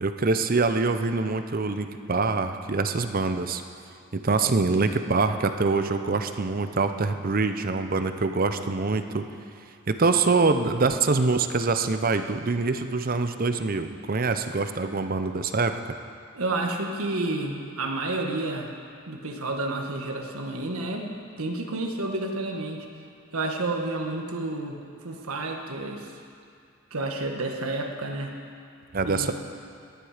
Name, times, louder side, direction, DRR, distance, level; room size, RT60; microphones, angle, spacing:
voice 1, 0.0-3.6 4.1-9.2 9.9-15.8 28.9-29.3, right 3 dB, 40° right, 8 dB, 0.6 m, -25 dB
voice 2, 16.3-18.7 19.1-22.9 23.3-24.8 25.0-26.1 26.9-28.3 29.0-29.3, right 2 dB, 80° right, 2 dB, 1.5 m, -30 dB
18.5 x 11.0 x 5.0 m, 2.4 s
head